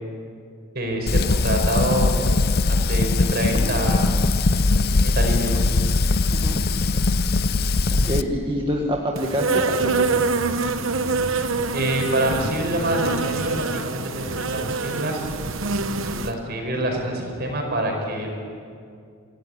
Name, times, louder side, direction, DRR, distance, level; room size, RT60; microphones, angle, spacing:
voice 1, 0.7-2.2 2.7-4.0 5.0-5.6 11.7-15.2 16.0-18.3, right 1 dB, 45° right, 2 dB, 5.3 m, -26 dB
Fire, 1.1-8.2, left 3 dB, 45° left, 0.6 m, -20 dB
voice 2, 7.9-10.1, equal, 25° right, 0 dB, 1.6 m, -26 dB
Insect, 9.2-16.3, right 3 dB, 60° right, 1.1 m, -25 dB
25.0 x 17.0 x 9.8 m, 2.3 s
head